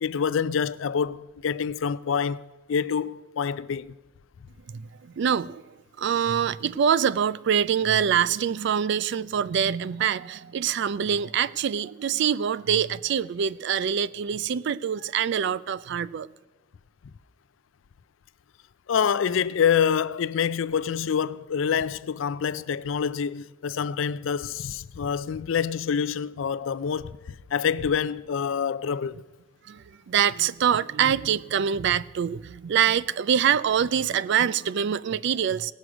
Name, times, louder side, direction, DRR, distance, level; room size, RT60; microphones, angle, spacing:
voice 1, 0.0-3.9 18.9-27.2 27.5-29.2, left 7 dB, 70° left, 0.4 m, -26 dB
voice 2, 4.7-5.6 6.0-16.3 29.7-35.7, right 8 dB, 60° right, 0.3 m, -25 dB
18.0 x 6.3 x 6.0 m
head